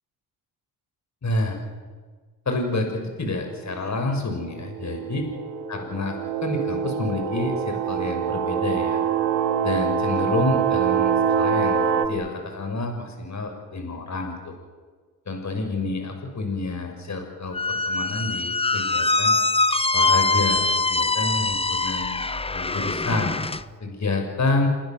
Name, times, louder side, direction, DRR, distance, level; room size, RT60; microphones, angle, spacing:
voice 1, 1.2-1.6 2.4-5.2 5.7-9.0 9.6-14.5 15.3-19.3 19.9-20.6 20.9-22.2 22.5-23.3 23.8-24.7, left 2 dB, 40° left, 4 dB, 6.7 m, -28 dB
sound 1, 3.7-3.9 4.7-12.1, right 7 dB, 85° right, 2.4 m, -24 dB
Squeak, 17.5-23.6, left 3 dB, 15° left, 1.1 m, -23 dB
29.5 x 20.0 x 7.8 m, 1.5 s
supercardioid pair, 65°, 42 cm